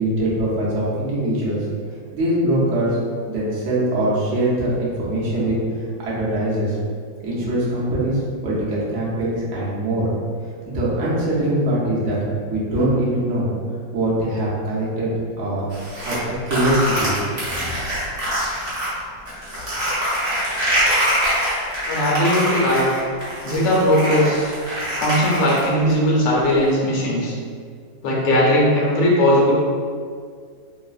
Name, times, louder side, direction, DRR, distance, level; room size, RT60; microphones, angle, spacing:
voice 1, 0.0-1.6 2.1-3.0 3.2-5.5 6.0-6.8 7.2-10.1 10.7-13.5 13.9-15.1 15.4-15.7 16.0-16.2 16.5-17.2, right 1 dB, 70° right, -7 dB, 0.7 m, -22 dB
sound 1, 15.7-18.9 19.3-25.9, equal, 50° right, 1.0 m, -24 dB
voice 2, 21.9-22.8 23.4-24.5 25.0-27.3 28.0-29.5, equal, 75° left, -4 dB, 1.3 m, -18 dB
3.1 x 2.0 x 2.4 m, 2.1 s
omnidirectional pair, 2.0 m